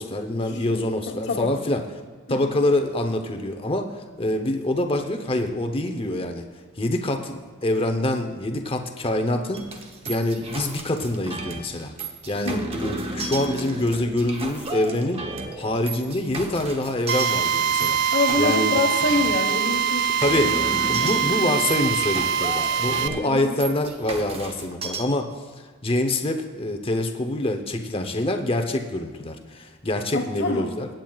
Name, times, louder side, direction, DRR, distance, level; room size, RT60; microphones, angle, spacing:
voice 1, 0.0-1.8 2.3-6.4 6.8-9.6 10.1-11.9 12.3-15.2 15.6-18.0 18.4-18.7 20.2-20.5 20.9-25.3 25.6-30.9, left 1 dB, 25° left, 5 dB, 0.8 m, -25 dB
voice 2, 0.7-1.5 2.3-2.5 12.4-12.8 18.1-20.5 20.9-21.3 23.2-23.6 30.1-30.7, left 2 dB, 55° left, 4 dB, 1.3 m, -26 dB
sound 1, 9.5-25.0, right 2 dB, 30° right, 0.9 m, -34 dB
Drill, 17.1-23.1, right 7 dB, 55° right, 0.4 m, -23 dB
24.0 x 9.0 x 2.4 m, 1.5 s
head